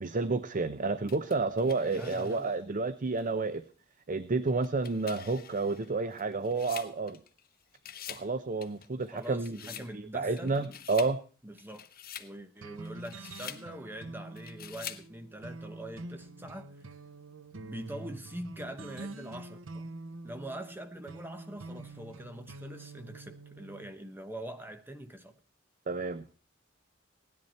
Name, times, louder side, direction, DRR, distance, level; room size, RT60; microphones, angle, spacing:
voice 1, 0.0-3.6 4.1-7.2 8.1-9.6 9.9-11.2 25.9-26.2, right 3 dB, 40° right, 13 dB, 0.7 m, -30 dB
sound 1, 1.1-2.6 3.2-3.3 4.5-7.5 7.7-8.3 8.6-9.9 10.4-11.2 11.6-12.3 12.8-13.7 14.4-15.1, left 10 dB, 50° left, 1.1 m, -46 dB
voice 2, 1.9-2.5 9.1-10.8 11.4-11.9 12.2-16.9 17.6-19.9 20.2-25.3, right 1 dB, 10° right, 8 dB, 1.1 m, -43 dB
sound 2, 12.6-23.9, right 2 dB, 85° right, 0.9 m, -46 dB
17.5 x 11.0 x 4.3 m, 0.39 s
head